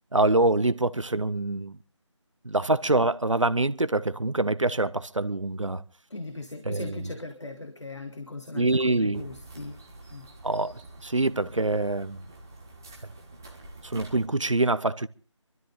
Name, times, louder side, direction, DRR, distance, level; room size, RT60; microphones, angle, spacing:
voice 1, 0.1-1.8 2.4-5.8 6.6-7.0 8.5-9.2 10.4-12.2 13.8-15.1, right 2 dB, 75° right, 1.0 m, -25 dB
voice 2, 6.1-9.8 10.1-10.3, left 2 dB, 65° left, 2.1 m, -39 dB
sound 1, 9.1-14.3, right 2 dB, 5° right, 0.7 m, -47 dB
25.0 x 13.0 x 3.9 m
figure-of-eight pair, 165°, 16 cm